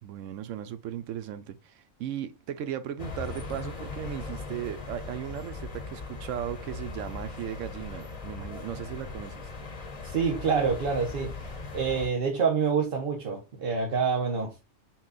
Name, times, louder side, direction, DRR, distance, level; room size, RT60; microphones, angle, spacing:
voice 1, 0.0-9.5, right 10 dB, 85° right, 1.0 m, -37 dB
sound 1, 3.0-12.1, left 3 dB, 35° left, 0.8 m, -39 dB
voice 2, 10.0-11.4 11.7-14.6, right 5 dB, 50° right, 0.9 m, -27 dB
6.0 x 2.3 x 3.8 m
omnidirectional pair, 1.3 m